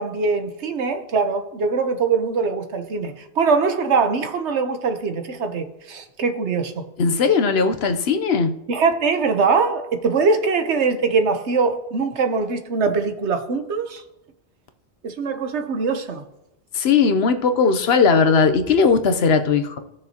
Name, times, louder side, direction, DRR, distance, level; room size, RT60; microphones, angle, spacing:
voice 1, 0.0-6.9 8.7-14.0 15.0-16.2, right 4 dB, 90° right, 1.2 m, -22 dB
voice 2, 7.0-8.5 16.7-19.8, left 5 dB, 70° left, 1.0 m, -18 dB
17.0 x 6.4 x 2.9 m
omnidirectional pair, 1.1 m